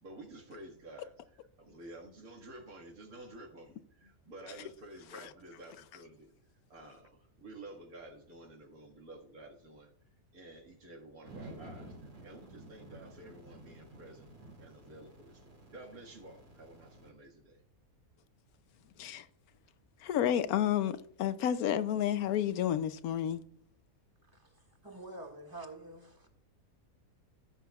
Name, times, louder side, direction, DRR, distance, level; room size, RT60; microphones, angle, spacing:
voice 1, 0.0-1.1 1.6-6.3 6.7-9.9 10.3-14.3 14.6-17.6, right 2 dB, 75° right, 2.3 m, -51 dB
sound 1, 11.2-17.1, right 1 dB, 45° right, 2.9 m, -52 dB
voice 2, 20.0-23.4, left 10 dB, 80° left, 1.1 m, -31 dB
voice 3, 24.3-26.3, right 2 dB, 15° right, 1.7 m, -48 dB
15.5 x 7.6 x 2.3 m
omnidirectional pair, 1.5 m